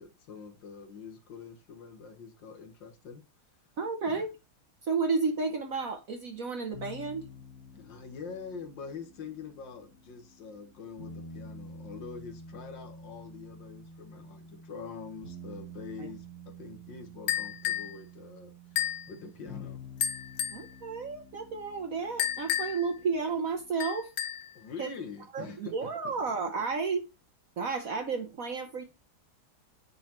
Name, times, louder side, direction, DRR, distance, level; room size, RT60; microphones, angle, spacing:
voice 1, 0.0-3.2 4.0-4.3 7.7-19.8 24.6-26.1, left 5 dB, 65° left, 1.8 m, -45 dB
voice 2, 3.8-4.3 4.8-7.2 16.0-16.1 20.5-24.1 24.8-24.9 25.3-27.1 27.6-28.8, right 4 dB, 55° right, 1.1 m, -32 dB
sound 1, 6.7-23.7, equal, 30° left, 1.9 m, -49 dB
sound 2, 17.3-17.9 18.8-19.1 20.0-20.7 22.2-22.9 23.8-24.5, left 10 dB, 90° left, 0.6 m, -31 dB
9.2 x 4.0 x 4.3 m
omnidirectional pair, 2.2 m